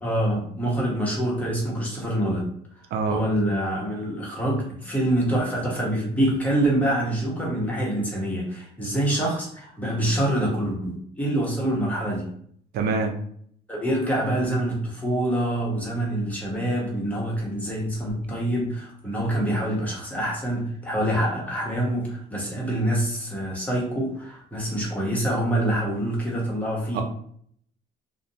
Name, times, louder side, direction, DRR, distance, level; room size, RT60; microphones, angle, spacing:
voice 1, 0.0-2.5 3.1-12.3 13.7-27.0, right 1 dB, 10° left, -3 dB, 0.9 m, -26 dB
voice 2, 12.7-13.1 26.9-27.0, right 4 dB, 70° right, 4 dB, 0.4 m, -24 dB
2.5 x 2.1 x 2.7 m, 0.63 s
cardioid pair, 110°, 17 cm